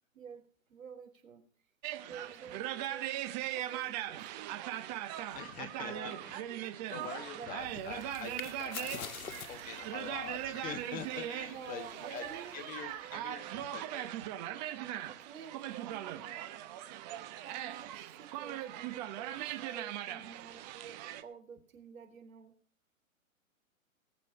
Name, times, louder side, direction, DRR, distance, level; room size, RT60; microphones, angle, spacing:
voice 1, 0.7-1.4 2.1-4.3 5.8-6.1 7.3-7.5 11.4-12.6 14.8-16.5 17.3-19.5 19.7-20.7 21.2-22.5, right 6 dB, 70° right, 5 dB, 3.9 m, -50 dB
sound 1, 1.8-21.2, right 13 dB, 30° right, 1.1 m, -40 dB
voice 2, 5.3-12.2 12.5-14.3, left 8 dB, 20° left, 9 dB, 1.3 m, -45 dB
sound 2, 7.5-13.3, left 7 dB, 80° left, 1.4 m, -48 dB
18.5 x 7.6 x 5.8 m, 0.41 s
hypercardioid pair, 135°, 41 cm